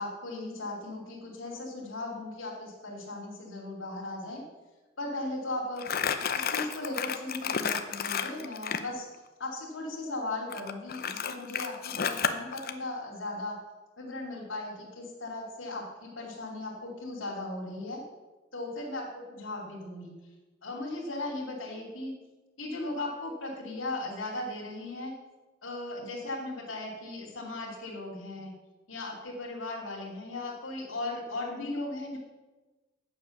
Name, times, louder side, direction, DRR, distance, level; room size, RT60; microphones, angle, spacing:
voice 1, 0.0-4.4 5.0-5.9 6.3-9.0 9.4-13.6 14.0-18.0 18.5-20.1 20.6-22.1 22.6-25.1 25.6-28.5 28.9-32.2, left 2 dB, 80° left, -4 dB, 2.8 m, -37 dB
Crumpling crinkling, 5.8-8.9 10.5-12.7, left 7 dB, 50° left, 0.7 m, -31 dB
8.9 x 7.1 x 6.5 m, 1.2 s
head